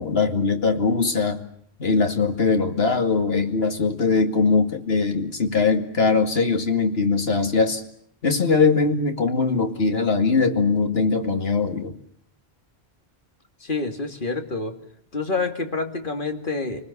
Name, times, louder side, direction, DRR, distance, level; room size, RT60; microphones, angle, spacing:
voice 1, 0.0-1.4 1.8-7.8 8.2-11.9, left 4 dB, 70° left, 5 dB, 2.5 m, -21 dB
voice 2, 13.6-14.7 15.1-16.8, left 3 dB, 55° left, 5 dB, 2.6 m, -27 dB
28.5 x 19.5 x 8.5 m, 0.67 s
omnidirectional pair, 1.1 m